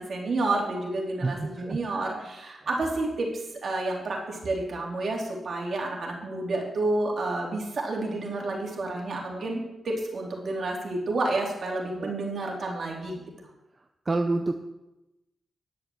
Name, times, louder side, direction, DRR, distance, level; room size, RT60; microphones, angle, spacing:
voice 1, 0.0-3.3 3.6-13.2, right 2 dB, 60° right, -1 dB, 3.3 m, -30 dB
voice 2, 1.2-2.0 12.0-12.1 14.1-14.5, right 3 dB, 35° right, 5 dB, 0.8 m, -28 dB
11.0 x 6.6 x 7.8 m, 0.96 s
cardioid pair, 70°, 0 cm